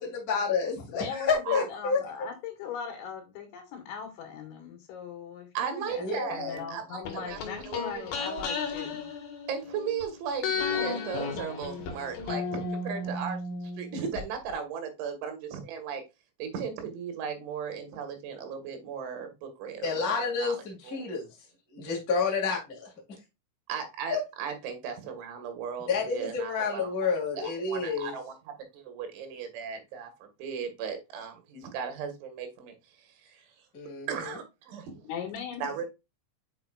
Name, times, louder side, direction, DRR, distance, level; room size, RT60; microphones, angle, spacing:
voice 1, 0.0-2.3 6.0-6.6 19.8-21.3 21.7-22.9 24.1-24.2 25.9-28.1 33.7-34.4, left 5 dB, 30° left, 1.6 m, -30 dB
voice 2, 0.9-9.1 35.1-35.9, left 7 dB, 85° left, 4.0 m, -39 dB
voice 3, 5.6-8.0 9.5-16.0 16.4-21.1 23.7-26.9 27.4-28.3 28.7-33.5 34.1-35.0 35.6-35.9, right 7 dB, 90° right, 3.9 m, -37 dB
sound 1, 7.1-10.0 10.4-14.2 14.5-14.6, left 4 dB, 65° left, 2.9 m, -34 dB
8.1 x 5.0 x 2.4 m
omnidirectional pair, 5.2 m